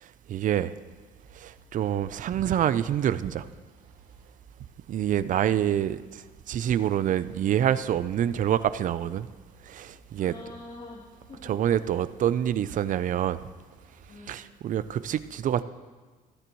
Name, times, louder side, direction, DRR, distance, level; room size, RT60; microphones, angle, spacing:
voice 1, 0.0-0.7 1.3-3.5 4.9-9.3 9.6-10.3 11.4-13.4 14.3-15.6, right 10 dB, 50° right, 0.5 m, -27 dB
sound 1, 0.9-14.1, right 3 dB, 80° right, 5.0 m, -57 dB
voice 2, 10.2-11.9 14.1-14.4, left 2 dB, 35° left, 3.1 m, -46 dB
25.5 x 9.9 x 3.1 m
cardioid pair, 110°, 17 cm